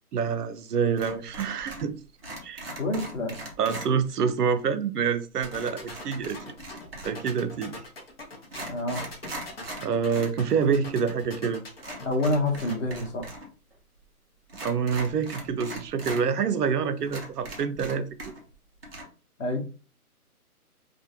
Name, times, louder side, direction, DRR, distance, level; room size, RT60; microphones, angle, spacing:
voice 1, 0.1-2.0 2.4-2.7 3.6-6.5 7.0-7.7 9.8-11.6 14.6-18.3, right 6 dB, 80° right, 0.6 m, -27 dB
sound 1, 1.0-1.9 2.2-3.9 5.5-7.3 8.0-8.1 8.4-10.4 10.7-10.8 11.8-13.5 13.7-13.8 14.5-16.2 16.7-16.8 17.1-18.5 18.8-19.0, right 1 dB, 40° right, 0.7 m, -40 dB
voice 2, 2.8-3.4 8.7-9.0 12.0-13.5 19.4-19.6, left 2 dB, 55° left, 1.0 m, -27 dB
sound 2, 5.4-12.7, left 3 dB, 40° left, 0.6 m, -41 dB
2.5 x 2.1 x 2.8 m
hypercardioid pair, 170°, 46 cm